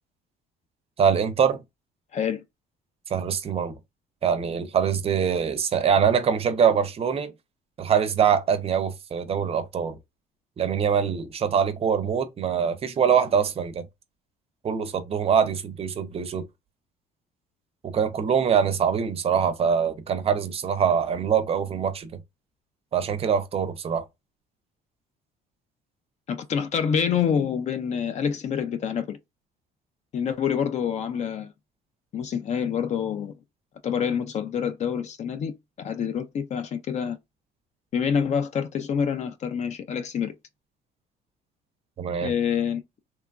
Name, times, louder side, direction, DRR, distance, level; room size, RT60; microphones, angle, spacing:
voice 1, 1.0-1.6 3.1-3.7 4.2-7.3 7.8-10.0 10.6-13.9 14.6-16.4 17.8-22.1 22.9-24.0 42.0-42.3, right 7 dB, 35° right, 0.5 m, -23 dB
voice 2, 2.1-2.4 26.3-29.2 30.1-31.5 32.1-33.4 33.8-35.5 35.8-37.2 37.9-40.3 42.2-42.8, left 7 dB, 45° left, 0.4 m, -27 dB
2.9 x 2.3 x 2.3 m
cardioid pair, 110°, 17 cm